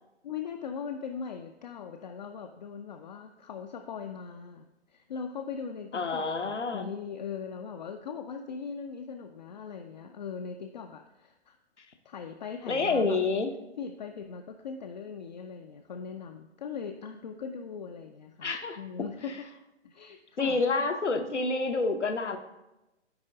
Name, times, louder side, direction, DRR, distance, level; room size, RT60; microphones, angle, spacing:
voice 1, 0.2-11.6 12.0-13.2 13.8-19.5 19.8-20.6, left 6 dB, 40° left, 4 dB, 0.4 m, -40 dB
voice 2, 5.9-6.9 12.7-13.5 18.4-18.8 20.4-22.4, left 3 dB, 85° left, 6 dB, 0.9 m, -28 dB
9.5 x 3.7 x 3.7 m, 0.96 s
figure-of-eight pair, 125°, 34 cm